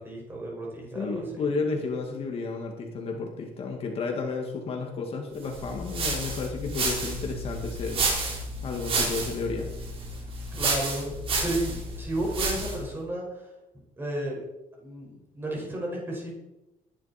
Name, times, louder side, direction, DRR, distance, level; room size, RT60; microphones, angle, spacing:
voice 1, 0.0-1.5 10.2-13.5 14.0-14.4 14.8-16.3, right 1 dB, 15° right, -2 dB, 5.6 m, -33 dB
voice 2, 0.9-8.1 8.6-9.7, left 4 dB, 45° left, 2 dB, 2.2 m, -32 dB
sound 1, 5.5-12.9, right 2 dB, 40° right, 3.7 m, -30 dB
20.0 x 11.0 x 4.5 m, 0.97 s
cardioid pair, 165°, 14 cm